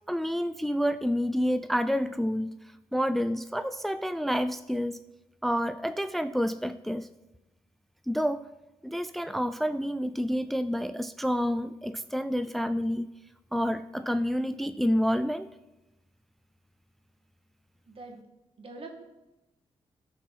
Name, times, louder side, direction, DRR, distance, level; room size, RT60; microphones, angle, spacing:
voice 1, 0.1-2.5 2.9-5.0 5.4-7.1 8.1-8.5 8.8-13.1 13.5-15.5, equal, ahead, 11 dB, 0.4 m, -28 dB
voice 2, 17.9-18.3 18.6-19.0, right 2 dB, 65° right, 2 dB, 2.0 m, -44 dB
13.5 x 4.6 x 5.8 m, 0.98 s
cardioid pair, 75°, 10 cm